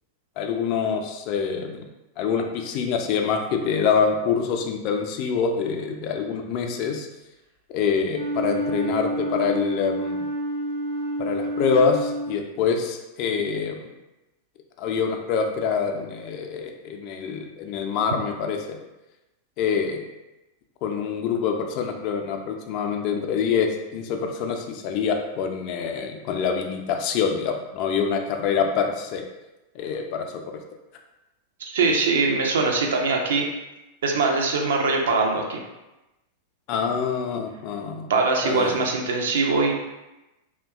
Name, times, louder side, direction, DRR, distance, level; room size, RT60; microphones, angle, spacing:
voice 1, 0.4-1.8 2.2-7.1 7.7-10.3 11.2-13.8 14.8-18.8 19.6-20.0 20.8-29.2 29.8-30.3 36.7-38.1 38.4-38.7, left 6 dB, 45° left, 4 dB, 0.3 m, -25 dB
Wind instrument woodwind instrument, 8.1-12.6, right 1 dB, 85° right, 0.7 m, -28 dB
voice 2, 31.6-33.5 34.0-35.6 38.1-39.7, right 3 dB, 60° right, 1 dB, 0.4 m, -22 dB
2.7 x 2.1 x 2.3 m, 1.0 s
figure-of-eight pair, 90°, 0 cm